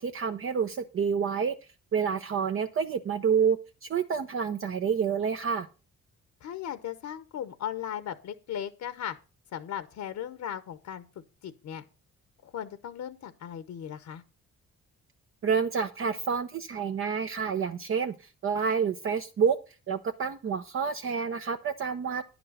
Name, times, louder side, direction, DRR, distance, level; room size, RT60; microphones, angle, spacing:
voice 1, 0.0-1.5 1.9-5.7 15.4-19.6 19.9-22.2, right 6 dB, 45° right, 7 dB, 0.7 m, -28 dB
voice 2, 6.4-9.2 9.5-11.0 11.4-11.8 12.4-14.2, left 10 dB, 65° left, 12 dB, 1.0 m, -37 dB
10.0 x 6.1 x 5.5 m, 0.32 s
cardioid pair, 90°, 30 cm